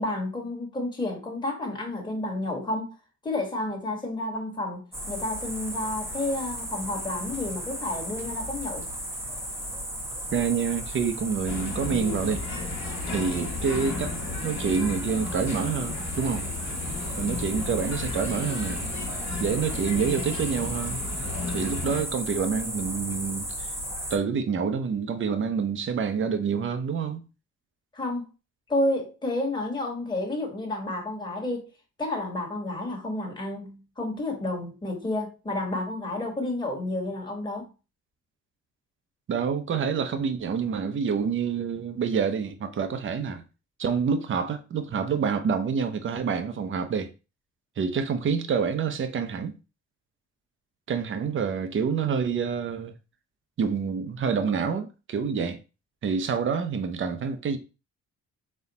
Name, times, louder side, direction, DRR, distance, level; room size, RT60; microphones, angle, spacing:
voice 1, 0.0-2.9 3.2-8.9 27.9-28.3 28.7-31.7 32.0-37.7, left 2 dB, 15° left, 1.4 m, -30 dB
sound 1, 4.9-24.2, right 1 dB, 10° right, 1.0 m, -35 dB
voice 2, 10.3-12.5 13.1-14.1 14.4-16.5 17.2-18.9 19.4-21.0 21.5-23.7 24.1-27.2 39.3-43.4 43.8-47.1 47.8-49.5 50.9-53.0 53.6-55.6 56.0-57.6, right 6 dB, 40° right, 0.7 m, -27 dB
sound 2, 11.5-22.0, left 3 dB, 60° left, 1.2 m, -34 dB
4.2 x 2.3 x 4.1 m
cardioid pair, 90°, 30 cm